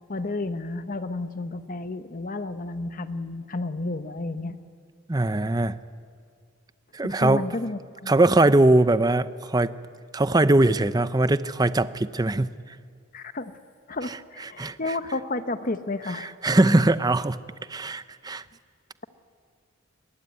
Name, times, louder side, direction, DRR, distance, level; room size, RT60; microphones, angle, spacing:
voice 1, 0.1-4.6 7.0-8.1 13.1-13.6 13.9-16.3, left 2 dB, 40° left, 10 dB, 1.0 m, -31 dB
voice 2, 5.1-5.8 6.9-7.5 8.1-9.7 10.1-12.8 14.6-14.8 16.2-17.4 17.7-18.4, right 2 dB, 20° right, 14 dB, 0.6 m, -21 dB
24.5 x 20.0 x 9.7 m, 2.1 s
head